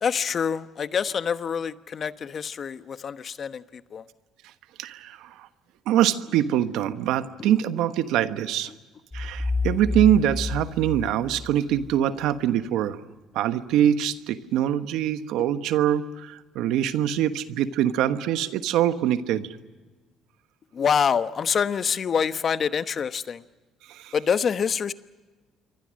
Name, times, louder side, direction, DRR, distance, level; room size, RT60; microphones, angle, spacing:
voice 1, 0.0-4.0 20.7-23.4 24.1-24.9, left 7 dB, 45° left, 12 dB, 1.0 m, -26 dB
voice 2, 4.8-5.5 5.9-8.7 9.1-13.0 13.3-19.6 23.9-24.1, right 11 dB, 80° right, 11 dB, 1.2 m, -24 dB
sound 1, 9.1-11.9, left 3 dB, 15° left, 1.3 m, -29 dB
27.5 x 24.0 x 6.4 m, 1.3 s
supercardioid pair, 85°, 0 cm